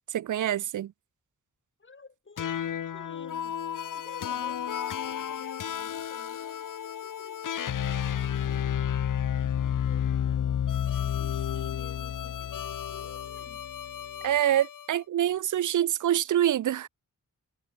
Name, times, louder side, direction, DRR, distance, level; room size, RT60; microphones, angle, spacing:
voice 1, 0.1-0.9 14.2-16.9, right 11 dB, 75° right, 0.5 m, -26 dB
voice 2, 1.8-8.8 9.1-10.6 11.0-13.7, left 4 dB, 40° left, 4.7 m, -53 dB
sound 1, 2.4-14.9, left 9 dB, 85° left, 1.0 m, -31 dB
wide cardioid pair, 135°, 31 cm